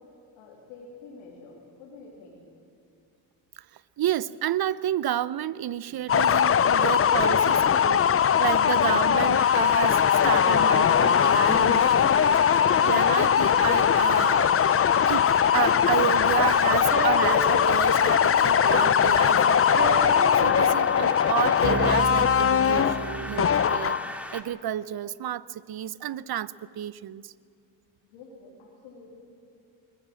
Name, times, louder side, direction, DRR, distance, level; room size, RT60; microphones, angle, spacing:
voice 1, 0.4-2.4 28.0-29.2, left 3 dB, 85° left, -4 dB, 3.4 m, -48 dB
voice 2, 3.6-14.5 15.1-20.0 20.4-24.0 24.3-27.3, right 11 dB, 50° right, 19 dB, 0.8 m, -31 dB
sound 1, 6.1-24.2, left 8 dB, 30° left, 0.6 m, -21 dB
sound 2, 9.3-24.4, equal, 5° right, 2.4 m, -38 dB
sound 3, 16.9-23.9, right 4 dB, 25° right, 1.3 m, -34 dB
21.0 x 20.0 x 7.7 m, 2.4 s
hypercardioid pair, 50°, 49 cm